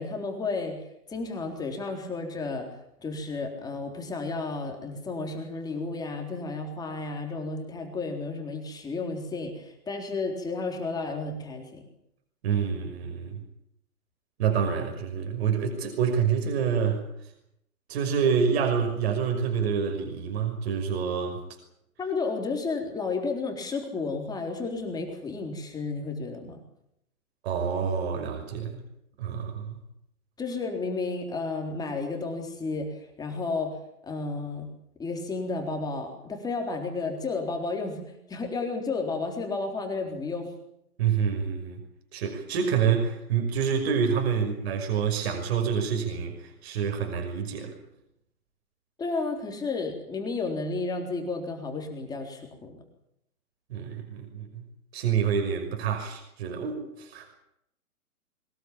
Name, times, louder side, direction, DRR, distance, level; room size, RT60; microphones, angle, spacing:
voice 1, 0.0-11.9 22.0-26.6 30.4-34.7 35.0-40.5 49.0-52.8, left 3 dB, 10° left, 3 dB, 3.9 m, -32 dB
voice 2, 12.4-13.4 14.4-17.0 17.9-21.4 27.4-28.8 29.2-29.8 41.0-41.8 42.1-47.7 53.7-54.6 54.9-57.3, right 7 dB, 45° right, 4 dB, 5.9 m, -27 dB
22.5 x 20.0 x 8.8 m, 0.78 s
hypercardioid pair, 150°, 44 cm